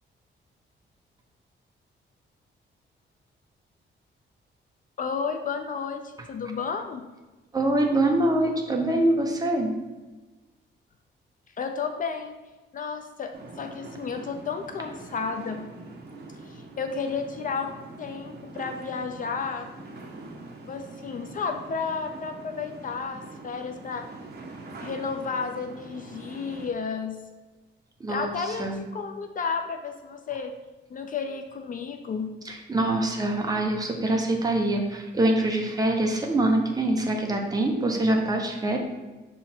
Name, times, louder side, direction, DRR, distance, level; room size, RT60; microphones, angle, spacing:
voice 1, 5.0-7.0 11.6-12.4 12.7-13.3 13.6-15.6 16.4-19.7 20.7-24.0 24.8-27.2 28.1-30.5 30.9-32.3, left 5 dB, 45° left, 6 dB, 0.4 m, -32 dB
voice 2, 7.5-9.7 28.0-28.8 32.4-38.8, right 1 dB, 20° right, 1 dB, 0.8 m, -24 dB
sound 1, 13.3-26.7, right 3 dB, 55° right, 1.1 m, -43 dB
6.1 x 3.8 x 4.4 m, 1.2 s
wide cardioid pair, 170°, 20 cm